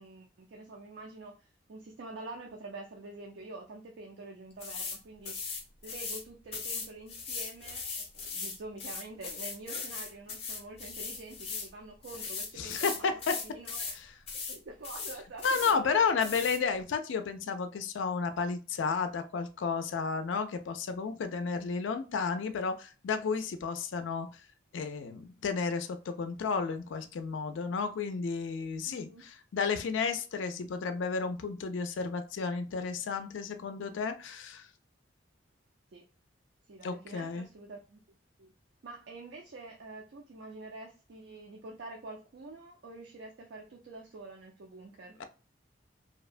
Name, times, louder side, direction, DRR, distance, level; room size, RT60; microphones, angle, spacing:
voice 1, 0.0-5.5 5.8-13.9 14.5-16.3 28.8-29.3 35.9-36.1 36.7-38.0 38.4-38.5 38.8-45.2, right 2 dB, 60° right, 1 dB, 0.4 m, -47 dB
sound 1, 4.6-5.0 5.3-6.2 6.5-11.7 12.0-14.0 14.3-14.6 14.8-15.7 16.2-16.6, left 5 dB, 30° left, 0.6 m, -38 dB
voice 2, 12.6-13.4 13.9-14.1 15.4-24.4 24.7-34.7 36.8-37.5 45.2-45.3, left 5 dB, 75° left, 8 dB, 0.4 m, -32 dB
2.7 x 2.1 x 2.4 m, 0.32 s
head